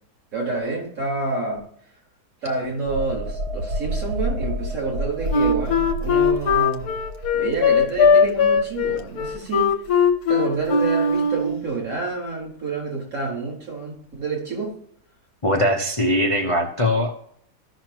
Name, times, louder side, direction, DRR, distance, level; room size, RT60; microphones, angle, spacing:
voice 1, 0.3-1.6 2.4-6.9 7.3-9.7 10.3-14.8, right 3 dB, 60° right, 4.7 m, -28 dB
sound 1, 2.9-10.3 10.7-10.9, equal, 75° right, 1.2 m, -31 dB
Wind instrument woodwind instrument, 5.3-11.6, left 5 dB, 75° left, 1.4 m, -19 dB
voice 2, 15.4-17.1, left 1 dB, 25° left, 0.8 m, -21 dB
15.5 x 6.1 x 3.0 m
omnidirectional pair, 1.6 m